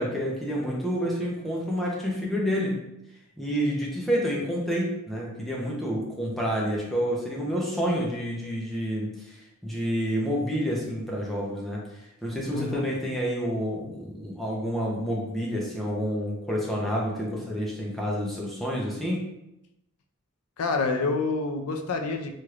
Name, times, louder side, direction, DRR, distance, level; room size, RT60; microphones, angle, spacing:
voice 1, 0.0-2.7 3.4-9.4 9.6-11.8 12.2-19.2, equal, ahead, -5 dB, 0.6 m, -29 dB
voice 2, 12.5-12.8 20.6-22.3, left 3 dB, 75° left, 4 dB, 0.4 m, -27 dB
3.2 x 2.9 x 2.4 m, 0.86 s
head